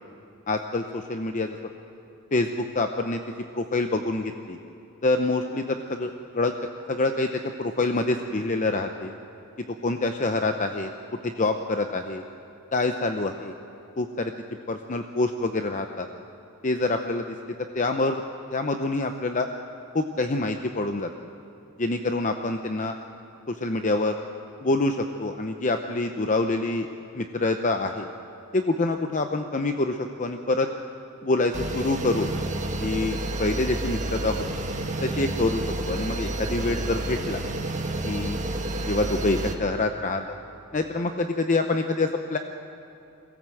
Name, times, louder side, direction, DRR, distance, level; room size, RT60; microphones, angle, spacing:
voice 1, 0.5-1.6 2.3-3.2 3.5-4.6 5.0-6.5 6.9-9.1 9.8-10.9 11.2-12.2 12.7-13.5 14.0-14.3 14.7-16.1 16.6-18.2 18.5-19.5 19.9-21.1 21.8-23.0 23.5-24.2 24.6-26.9 27.1-28.1 28.5-30.7 31.2-32.3 32.8-34.4 35.0-37.4 38.0-38.4 38.8-40.4 40.7-42.4, left 2 dB, 35° left, 6 dB, 0.7 m, -26 dB
sound 1, 31.5-39.5, right 1 dB, 35° right, 1.6 m, -30 dB
22.5 x 17.0 x 7.7 m, 2.7 s
head